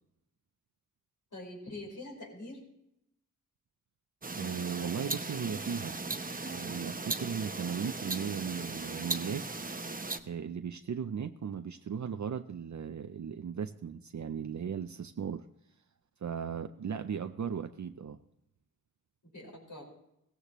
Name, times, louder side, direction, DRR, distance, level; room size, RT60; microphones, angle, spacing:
voice 1, 1.3-2.6 19.2-19.9, left 2 dB, 65° left, -2 dB, 4.9 m, -44 dB
sound 1, 4.2-10.2, right 3 dB, 25° right, 0.8 m, -37 dB
voice 2, 4.3-6.0 6.5-9.4 10.2-15.4 16.2-18.2, right 7 dB, 60° right, 7 dB, 0.6 m, -37 dB
16.5 x 15.0 x 3.0 m, 0.81 s
cardioid pair, 50°, 33 cm